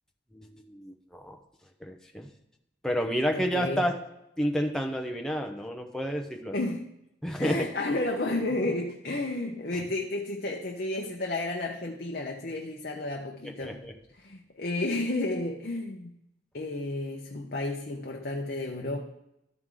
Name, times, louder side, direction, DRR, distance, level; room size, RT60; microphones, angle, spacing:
voice 1, 0.3-1.4 1.8-2.3 2.8-4.0 4.4-6.6 7.2-7.7 7.9-8.1 8.7-8.8 13.6-13.9, equal, 5° left, 3 dB, 0.7 m, -30 dB
voice 2, 3.3-3.8 6.5-6.9 7.4-13.8 14.2-16.1 16.5-19.0, left 2 dB, 50° left, 1 dB, 0.7 m, -32 dB
12.5 x 4.7 x 3.7 m, 0.83 s
head